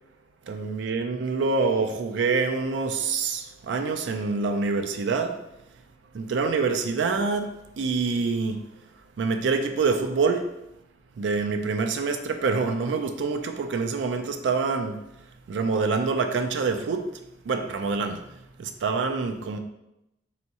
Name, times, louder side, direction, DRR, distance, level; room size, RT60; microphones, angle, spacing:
voice 1, 0.5-5.4 6.1-8.6 9.2-10.5 11.2-15.0 15.5-18.2 18.6-19.6, right 4 dB, 75° right, 7 dB, 0.4 m, -26 dB
4.2 x 3.5 x 2.8 m, 0.87 s
head